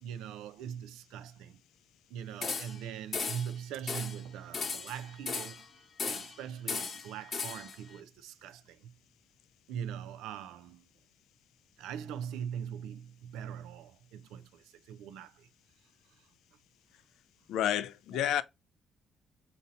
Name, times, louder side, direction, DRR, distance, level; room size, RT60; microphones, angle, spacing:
voice 1, 0.0-1.6 2.1-5.6 6.0-8.9 9.7-10.8 11.8-15.5 16.2-16.3 18.1-18.2, right 8 dB, 90° right, 0.4 m, -42 dB
sound 1, 2.4-2.9 3.1-3.5 3.9-4.2 4.5-5.6 6.0-6.4 6.7-7.8, left 5 dB, 45° left, 0.9 m, -36 dB
voice 2, 17.5-18.4, left 11 dB, 80° left, 0.4 m, -30 dB
4.1 x 2.6 x 4.0 m
cardioid pair, 85°, 0 cm